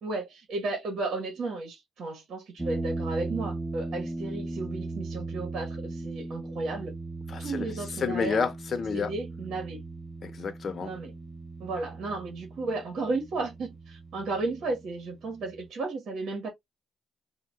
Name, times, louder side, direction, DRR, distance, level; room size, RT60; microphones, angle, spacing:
voice 1, 0.0-7.0 7.4-8.4 8.9-9.8 10.8-11.1 11.6-16.5, right 3 dB, 65° right, 1.3 m, -34 dB
sound 1, 2.6-15.7, right 2 dB, 5° right, 0.5 m, -38 dB
voice 2, 7.3-7.7 8.0-9.1 10.2-10.9, left 5 dB, 50° left, 0.8 m, -30 dB
3.8 x 2.4 x 3.6 m
cardioid pair, 90°, 0 cm